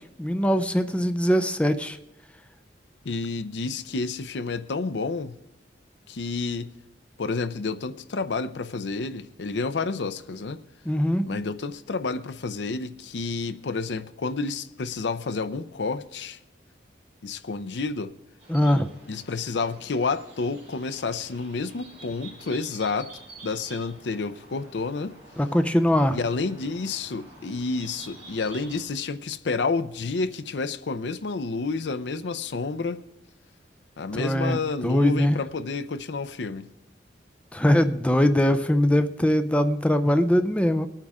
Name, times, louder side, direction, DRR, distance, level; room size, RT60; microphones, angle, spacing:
voice 1, 0.2-2.0 10.9-11.4 18.5-18.9 25.4-26.2 34.1-34.6 34.8-35.4 37.5-40.9, equal, 5° left, 9 dB, 0.5 m, -21 dB
voice 2, 3.0-5.4 6.1-6.7 7.2-10.6 11.2-16.4 17.2-18.1 19.1-23.1 23.4-25.2 26.1-33.0 34.0-36.7, left 4 dB, 75° left, 13 dB, 0.6 m, -30 dB
sound 1, 18.4-28.8, right 2 dB, 10° right, 5.7 m, -48 dB
21.0 x 9.1 x 3.6 m, 0.86 s
head